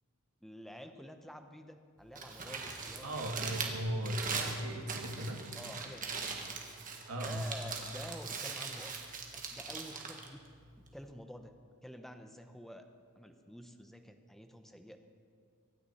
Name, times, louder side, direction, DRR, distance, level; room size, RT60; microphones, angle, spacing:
voice 1, 0.4-3.5 5.5-6.6 7.2-9.0 9.3-10.4 10.9-11.5 11.8-12.8 13.2-15.0, equal, ahead, 6 dB, 0.8 m, -49 dB
Crumpling crinkling, 2.0-11.1, right 5 dB, 35° right, 1.6 m, -41 dB
voice 2, 3.0-5.5 7.1-7.5, right 1 dB, 85° right, 3 dB, 1.6 m, -37 dB
24.0 x 10.0 x 4.2 m, 2.2 s
head